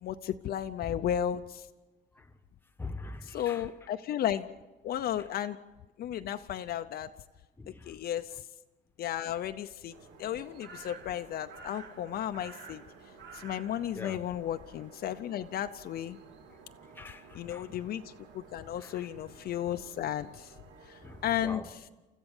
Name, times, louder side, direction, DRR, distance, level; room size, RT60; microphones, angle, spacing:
voice 1, 0.0-1.7 3.3-4.5 4.8-5.6 6.0-7.1 7.9-8.4 9.0-9.9 10.2-12.8 13.3-16.2 17.3-18.0 18.3-20.5 20.9-21.6, left 10 dB, 60° left, 0.6 m, -34 dB
voice 2, 2.8-3.7 5.2-5.3 7.6-8.0 13.9-14.2 16.5-16.6 16.9-17.7 18.8-19.1 21.0-21.9, left 3 dB, 10° left, 1.2 m, -44 dB
sound 1, 9.9-21.4, right 5 dB, 85° right, 2.4 m, -52 dB
28.5 x 14.5 x 7.2 m
cardioid pair, 160°, 18 cm